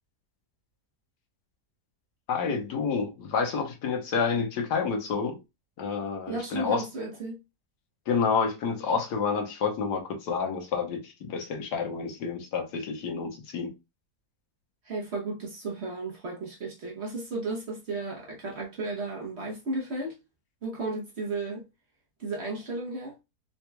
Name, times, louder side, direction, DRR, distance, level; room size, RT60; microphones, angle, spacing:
voice 1, 2.3-5.4 5.8-6.8 8.1-13.7, left 5 dB, 80° left, 1.5 m, -29 dB
voice 2, 6.3-7.4 14.8-20.2 20.6-21.6 22.2-23.2, right 2 dB, 50° right, 1.0 m, -34 dB
4.0 x 2.9 x 2.2 m
omnidirectional pair, 1.8 m